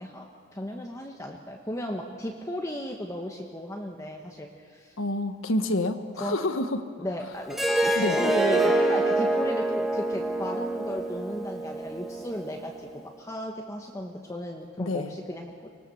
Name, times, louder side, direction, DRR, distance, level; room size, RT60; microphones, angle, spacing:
voice 1, 0.0-4.9 6.2-6.4 7.0-15.7, left 1 dB, 15° left, 1 dB, 1.2 m, -35 dB
voice 2, 5.0-6.9 7.9-8.2 14.8-15.1, left 1 dB, 70° left, 9 dB, 1.4 m, -28 dB
Harp, 7.5-12.7, right 2 dB, ahead, 1.6 m, -26 dB
24.5 x 19.0 x 7.0 m, 2.2 s
head